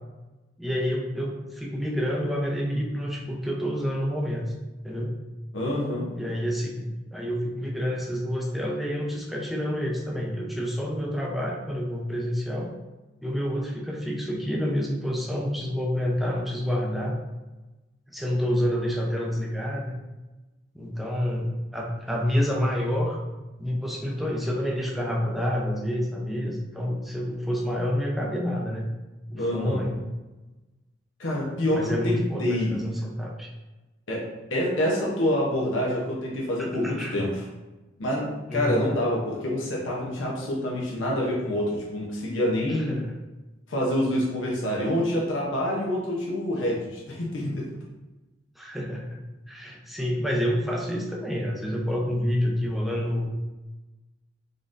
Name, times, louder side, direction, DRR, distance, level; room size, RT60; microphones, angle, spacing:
voice 1, 0.6-4.5 4.8-5.2 6.1-12.7 13.2-17.2 18.1-20.0 20.7-23.2 23.6-28.9 29.3-30.0 31.7-33.5 36.6-37.2 38.5-38.9 42.7-43.2 48.6-49.2 49.5-53.3, equal, ahead, -2 dB, 0.5 m, -28 dB
voice 2, 5.5-6.1 29.4-29.8 31.2-32.8 34.1-34.2 34.5-37.4 38.0-43.0 43.7-47.7, left 1 dB, 80° left, -3 dB, 0.9 m, -27 dB
3.9 x 3.6 x 2.5 m, 1.1 s
head